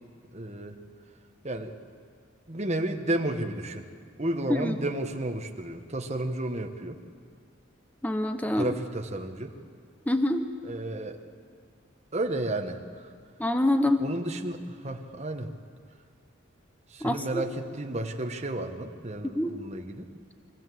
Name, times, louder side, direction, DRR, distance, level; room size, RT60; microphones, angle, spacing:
voice 1, 0.3-0.8 1.4-1.8 2.5-3.8 4.2-7.0 8.6-9.5 10.6-11.2 12.1-13.1 14.0-15.5 16.9-20.1, right 1 dB, 35° right, 4 dB, 1.3 m, -32 dB
voice 2, 8.0-8.7 10.1-10.5 13.4-14.0 17.0-17.4 19.2-19.5, left 1 dB, 10° left, 7 dB, 0.8 m, -26 dB
24.0 x 15.5 x 7.7 m, 2.1 s
head